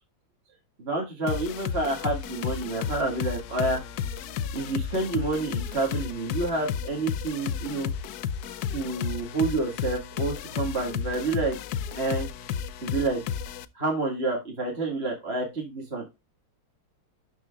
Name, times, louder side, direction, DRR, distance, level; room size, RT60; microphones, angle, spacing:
voice 1, 0.8-3.8 4.5-7.9 8.7-11.6 11.9-12.3 12.8-13.2 13.8-16.2, right 2 dB, 30° right, -1 dB, 2.0 m, -29 dB
sound 1, 1.3-13.6, left 7 dB, 80° left, 0.8 m, -33 dB
12.5 x 5.7 x 2.3 m, 0.23 s
omnidirectional pair, 2.3 m